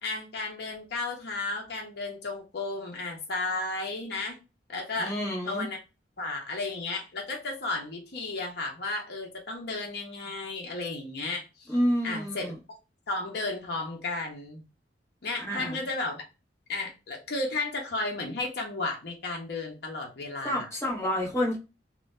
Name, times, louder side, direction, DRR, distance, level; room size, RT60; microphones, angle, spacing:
voice 1, 0.0-4.4 4.7-5.2 5.5-5.8 6.2-11.7 12.0-12.5 13.1-14.6 15.2-16.2 16.7-20.7, left 3 dB, 65° left, 1 dB, 0.7 m, -33 dB
voice 2, 5.0-5.7 11.7-12.5 15.5-15.8 20.4-21.6, equal, 15° left, -4 dB, 1.0 m, -28 dB
2.6 x 2.2 x 3.1 m, 0.29 s
head